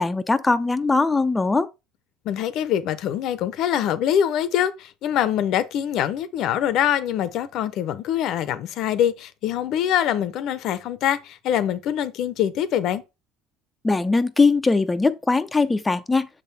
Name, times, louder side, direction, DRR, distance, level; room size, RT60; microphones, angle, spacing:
voice 1, 0.0-1.7 13.8-16.3, left 3 dB, 15° left, 0.5 m, -20 dB
voice 2, 2.2-13.0, left 10 dB, 60° left, 0.7 m, -24 dB
6.6 x 3.8 x 4.1 m
supercardioid pair, 80°, 0 cm